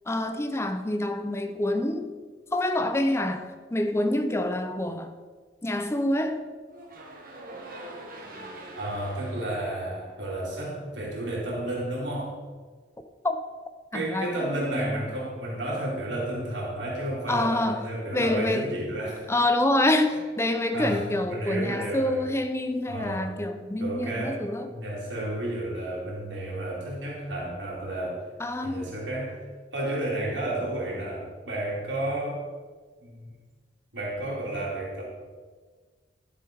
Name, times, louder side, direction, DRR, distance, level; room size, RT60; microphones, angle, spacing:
voice 1, 0.1-2.1 2.5-5.1 5.6-6.4 13.2-13.4 13.9-14.9 17.3-17.8 18.1-18.7 19.3-24.7 28.4-28.9, left 1 dB, 15° left, 0.6 m, -27 dB
sound 1, 6.7-10.9, right 1 dB, 55° right, 1.7 m, -44 dB
voice 2, 8.8-12.3 13.9-19.3 20.7-22.2 22.9-23.3 23.8-28.2 28.6-29.4 29.7-32.4 33.0-33.3 33.9-35.0, right 1 dB, 85° right, 3.3 m, -32 dB
12.0 x 7.1 x 4.7 m
head